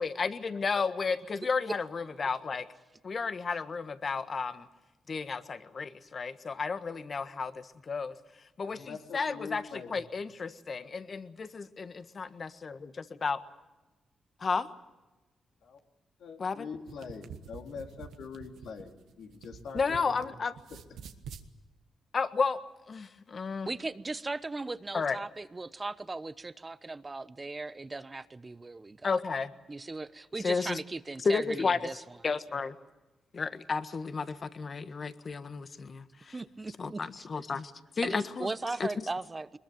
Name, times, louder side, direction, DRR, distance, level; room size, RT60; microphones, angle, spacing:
voice 1, 0.0-2.7 3.0-4.7 5.1-8.2 8.6-12.9 13.2-13.4 14.4-14.7 16.4-16.7 19.7-20.5 22.1-22.6 22.9-23.7 24.9-25.2 29.0-29.5 30.4-30.8 31.3-31.8 32.2-32.8 33.3-36.3 36.8-38.5 38.8-38.9, left 5 dB, 50° left, 1.6 m, -32 dB
voice 2, 8.6-9.9 15.6-15.8 16.2-20.3, left 5 dB, 75° left, 2.7 m, -44 dB
sound 1, 16.7-20.3 20.6-21.5, right 7 dB, 80° right, 1.5 m, -47 dB
voice 3, 23.6-29.2 29.7-32.2 36.3-37.3 38.0-39.6, right 3 dB, 30° right, 1.0 m, -38 dB
22.5 x 21.5 x 9.0 m
supercardioid pair, 50°, 0 cm